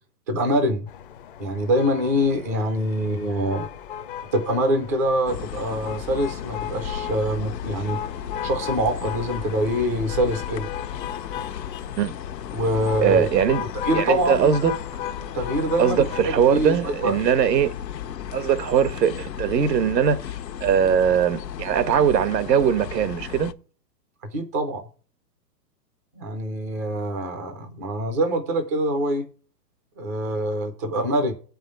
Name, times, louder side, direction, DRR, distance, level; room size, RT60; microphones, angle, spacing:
voice 1, 0.3-0.9 1.4-3.7 4.3-8.0 8.4-10.7 12.5-13.3 13.8-14.5 15.3-17.1 24.2-24.8 26.2-29.3 30.0-31.3, equal, 10° right, 0.4 m, -24 dB
sound 1, 0.9-16.2, left 9 dB, 35° left, 0.6 m, -36 dB
sound 2, 5.3-23.5, left 9 dB, 85° left, 1.1 m, -35 dB
voice 2, 13.0-13.6 13.9-14.7 15.8-17.7 18.3-20.2 20.6-23.5, right 8 dB, 80° right, 1.5 m, -20 dB
8.3 x 5.6 x 7.8 m
hypercardioid pair, 160°, 49 cm